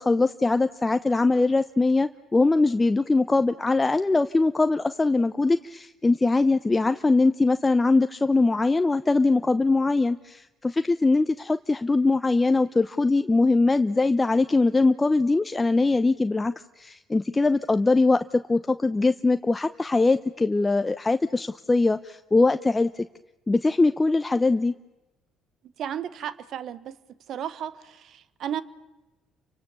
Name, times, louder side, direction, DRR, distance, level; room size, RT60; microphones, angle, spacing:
voice 1, 0.0-23.1 23.5-24.7, left 3 dB, 20° left, 0.8 m, -22 dB
voice 2, 25.8-27.0 27.3-28.6, right 9 dB, 60° right, 1.2 m, -33 dB
29.5 x 24.5 x 6.9 m
hypercardioid pair, 55°, 0 cm